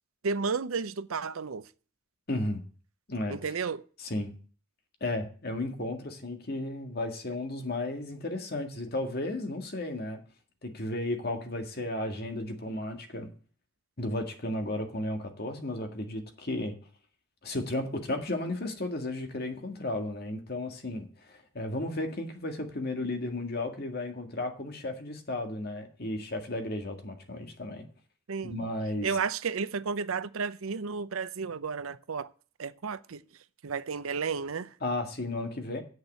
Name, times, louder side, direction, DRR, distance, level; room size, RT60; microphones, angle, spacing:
voice 1, 0.2-1.7 3.3-3.8 28.3-28.5 29.0-32.3 32.6-33.2 33.6-34.7, right 5 dB, 90° right, 0.6 m, -32 dB
voice 2, 2.3-2.6 3.1-3.5 4.0-4.3 5.0-10.2 10.6-13.3 14.0-16.8 17.4-27.9 28.4-29.1 34.8-35.8, left 1 dB, 50° left, 1.8 m, -34 dB
8.1 x 6.6 x 8.3 m
head